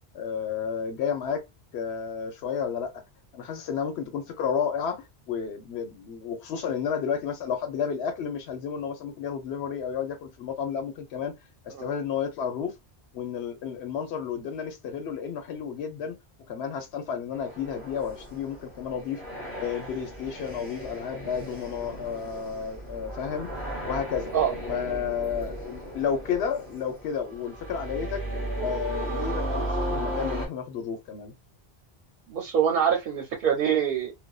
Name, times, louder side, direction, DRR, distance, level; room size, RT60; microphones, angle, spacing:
voice 1, 0.1-1.5 1.7-3.0 3.3-11.3 11.6-12.8 13.1-16.2 16.5-19.2 19.5-23.5 23.8-24.3 24.7-28.2 28.6-31.3, left 7 dB, 80° left, 0.9 m, -31 dB
sound 1, 17.3-30.5, right 1 dB, 10° left, 1.1 m, -35 dB
voice 2, 32.3-34.1, right 8 dB, 65° right, 0.7 m, -24 dB
2.5 x 2.1 x 2.2 m
omnidirectional pair, 1.1 m